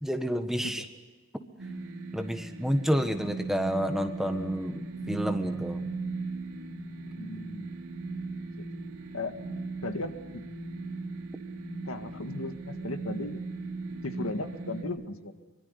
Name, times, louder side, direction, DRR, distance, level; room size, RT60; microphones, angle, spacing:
voice 1, 0.0-0.8 2.1-5.9, equal, ahead, 6 dB, 1.5 m, -29 dB
sound 1, 1.6-14.8, right 3 dB, 85° right, 3.1 m, -38 dB
voice 2, 7.2-7.7 8.3-8.7 9.1-9.4 9.8-10.4 11.9-13.5 14.0-15.3, left 2 dB, 85° left, 7 dB, 1.9 m, -37 dB
25.0 x 23.5 x 8.3 m, 1.3 s
head